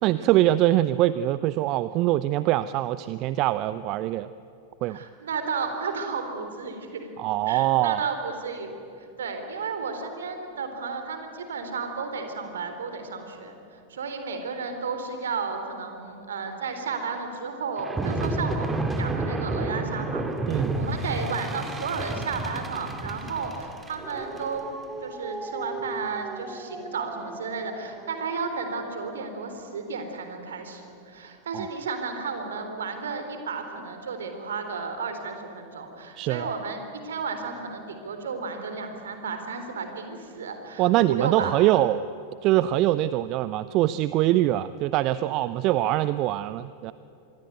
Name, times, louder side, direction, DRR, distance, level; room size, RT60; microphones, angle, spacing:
voice 1, 0.0-4.3 4.8-5.0 7.2-8.0 20.5-20.7 31.5-31.7 36.2-36.5 40.8-42.1 42.4-46.9, right 15 dB, 40° right, 16 dB, 0.6 m, -23 dB
voice 2, 4.9-7.1 7.5-18.7 19.0-20.2 20.5-24.7 25.0-41.5, right 5 dB, 65° right, 7 dB, 3.7 m, -33 dB
sound 1, 17.8-28.4, right 2 dB, 15° right, 2.3 m, -32 dB
26.0 x 21.5 x 9.3 m, 2.7 s
figure-of-eight pair, 90°, 0 cm